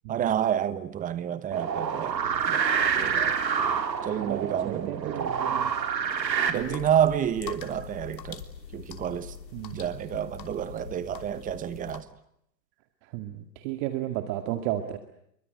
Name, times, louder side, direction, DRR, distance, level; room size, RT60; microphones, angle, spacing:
voice 1, 0.1-2.2 2.5-2.6 3.0-3.4 4.0-5.3 6.5-8.4 8.7-9.3 9.7-12.1, right 9 dB, 15° right, 1.1 m, -29 dB
sound 1, 1.5-6.5, right 7 dB, 90° right, 3.9 m, -27 dB
voice 2, 4.6-5.7 6.5-6.8 9.5-9.9 13.1-15.0, right 13 dB, 35° right, 2.1 m, -33 dB
sound 2, 6.5-12.0, left 8 dB, 80° left, 3.3 m, -43 dB
28.0 x 23.0 x 8.1 m
hypercardioid pair, 135°, 50 cm